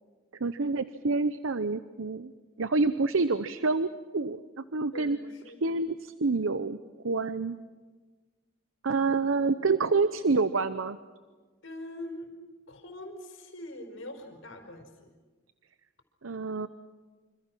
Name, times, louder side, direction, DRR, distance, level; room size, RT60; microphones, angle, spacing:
voice 1, 0.4-2.3 2.6-4.4 4.7-5.2 5.6-6.8 7.0-7.6 8.8-11.0 16.2-16.7, right 3 dB, 85° right, 12 dB, 0.8 m, -27 dB
voice 2, 4.9-5.8 11.6-12.3 12.7-15.1, left 1 dB, 75° left, 5 dB, 5.1 m, -43 dB
27.0 x 27.0 x 6.2 m, 1.4 s
head